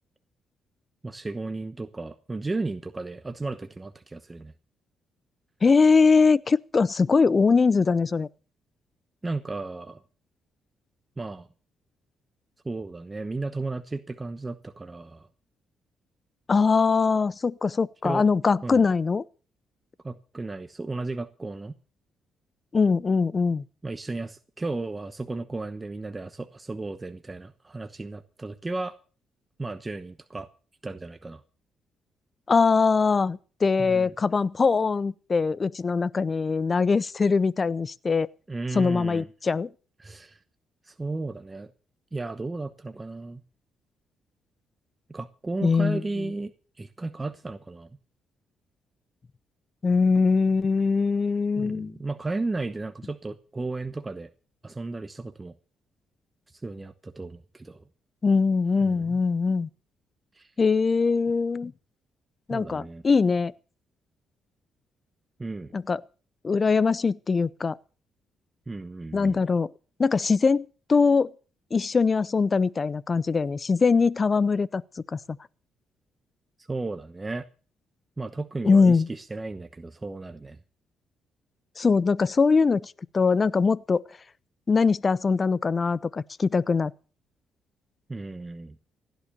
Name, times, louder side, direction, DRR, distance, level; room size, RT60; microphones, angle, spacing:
voice 1, 1.0-4.5 9.2-10.0 11.2-11.5 12.6-15.3 18.0-18.3 18.6-18.9 20.0-21.8 23.8-29.0 29.6-30.5 30.8-31.4 33.8-34.1 38.5-39.2 40.0-40.4 40.9-41.7 42.1-43.4 45.1-47.9 51.6-54.3 54.6-55.5 56.6-57.8 58.8-59.2 60.3-60.5 62.5-63.0 65.4-65.7 68.7-69.4 76.7-77.5 78.2-80.6 88.1-88.8, right 3 dB, 20° right, 1.0 m, -34 dB
voice 2, 5.6-8.3 16.5-19.2 22.7-23.6 32.5-38.3 38.7-39.7 45.6-46.0 49.8-51.9 58.2-59.7 60.6-61.7 62.5-63.5 65.7-66.0 66.4-67.8 69.1-69.7 70.0-71.3 71.7-74.8 75.1-75.2 78.6-79.1 81.8-84.0 84.7-86.9, left 4 dB, 35° left, 0.6 m, -22 dB
16.5 x 10.5 x 6.7 m
cardioid pair, 90°, 0 cm